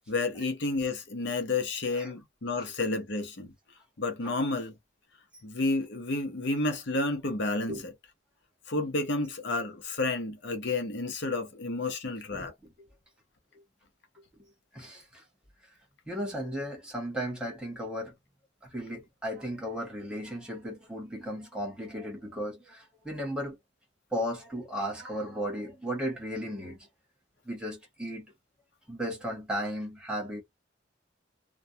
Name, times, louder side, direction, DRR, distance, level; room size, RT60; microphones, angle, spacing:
voice 1, 0.1-3.5 4.0-4.7 5.4-7.8 8.7-12.5, left 3 dB, 65° left, 0.7 m, -30 dB
voice 2, 12.3-12.7 14.3-14.5 14.7-15.2 16.1-18.2 18.6-23.6 24.1-26.9 27.4-28.3 28.9-30.4, equal, 5° right, 1.1 m, -35 dB
2.3 x 2.2 x 2.7 m
head